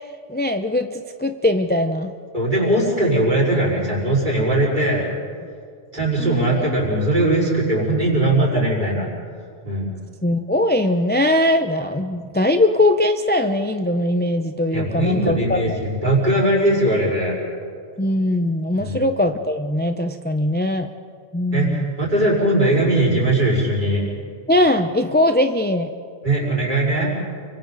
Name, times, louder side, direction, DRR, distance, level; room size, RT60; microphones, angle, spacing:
voice 1, 0.3-2.1 6.2-6.7 10.2-15.8 18.0-20.9 21.3-21.9 24.5-25.9, left 1 dB, 10° left, 6 dB, 0.6 m, -20 dB
voice 2, 2.3-5.0 5.9-9.1 9.6-9.9 14.7-17.4 18.8-19.0 21.5-24.0 26.2-27.1, right 1 dB, 45° right, -4 dB, 5.7 m, -20 dB
30.0 x 24.5 x 4.1 m, 2.2 s
omnidirectional pair, 1.1 m